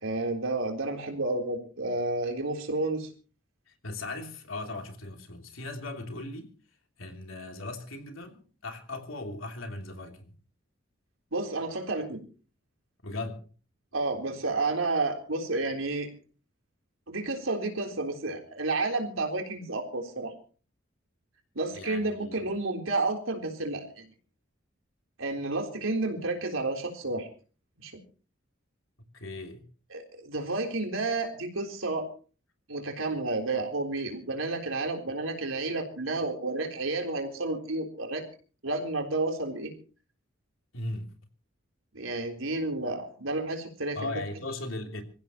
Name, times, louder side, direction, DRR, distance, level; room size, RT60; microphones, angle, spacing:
voice 1, 0.0-3.1 11.3-12.2 13.9-16.1 17.1-20.3 21.6-24.0 25.2-27.3 27.8-27.9 29.9-32.1 32.7-38.3 38.6-39.7 41.9-44.2, right 2 dB, 85° right, 3.8 m, -31 dB
voice 2, 3.7-6.5 7.0-10.3 13.0-13.4 21.7-22.4 29.1-29.6 40.7-41.1 43.9-45.0, left 2 dB, 85° left, 3.2 m, -38 dB
26.0 x 15.5 x 3.0 m
head